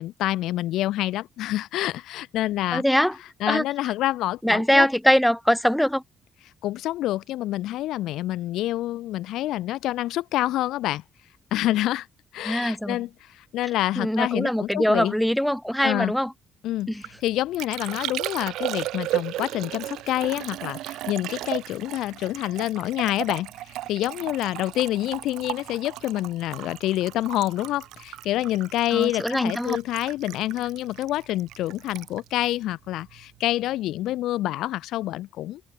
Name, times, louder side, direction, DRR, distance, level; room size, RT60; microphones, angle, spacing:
voice 1, 0.0-2.8 3.4-4.9 6.6-11.0 11.5-12.1 12.3-15.1 15.8-16.1 16.6-35.6, left 15 dB, 85° left, 1.4 m, -27 dB
voice 2, 2.7-3.2 3.5-3.6 4.4-6.0 12.4-13.0 14.0-16.3 16.9-17.0 28.9-29.8, equal, ahead, 2.4 m, -22 dB
Liquid, 16.8-33.4 33.7-34.2, right 15 dB, 90° right, 1.8 m, -35 dB
cardioid pair, 125°, 0 cm